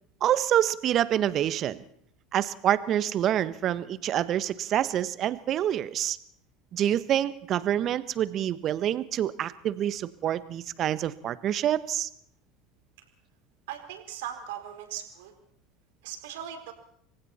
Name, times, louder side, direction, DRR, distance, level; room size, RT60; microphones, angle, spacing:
voice 1, 0.2-1.8 2.3-6.2 6.7-12.1, right 11 dB, 45° right, 15 dB, 1.3 m, -27 dB
voice 2, 13.7-15.3 16.0-16.7, right 10 dB, 70° right, 5 dB, 4.4 m, -39 dB
29.5 x 24.0 x 4.4 m, 0.66 s
hypercardioid pair, 75°, 0 cm